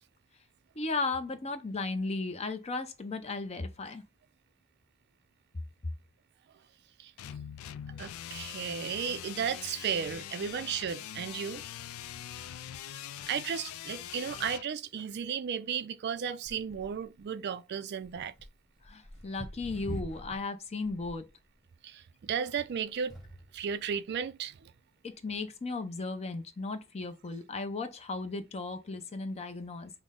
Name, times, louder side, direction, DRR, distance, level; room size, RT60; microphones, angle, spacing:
voice 1, 0.8-4.0 18.8-21.2 25.0-29.9, left 3 dB, 30° left, 0.6 m, -35 dB
sound 1, 7.2-14.6, left 10 dB, 85° left, 0.3 m, -43 dB
voice 2, 7.9-11.6 13.0-18.3 21.8-23.2 23.5-24.7, right 7 dB, 55° right, 0.3 m, -34 dB
sound 2, 16.4-17.2 18.0-20.5 20.8-21.3 22.4-23.6 24.4-24.5, right 2 dB, ahead, 1.1 m, -45 dB
5.9 x 2.1 x 3.6 m
head